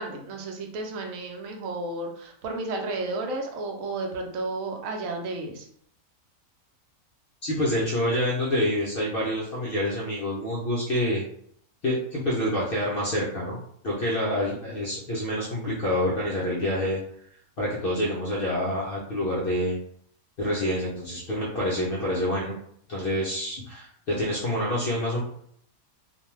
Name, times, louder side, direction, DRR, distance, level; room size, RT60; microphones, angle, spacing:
voice 1, 0.0-5.7, right 2 dB, 70° right, 2 dB, 0.9 m, -32 dB
voice 2, 7.4-11.2 11.8-13.6 13.8-17.0 17.6-19.8 20.4-22.5 22.9-25.2, left 1 dB, 60° left, -6 dB, 0.6 m, -27 dB
2.5 x 2.2 x 3.0 m, 0.66 s
omnidirectional pair, 1.5 m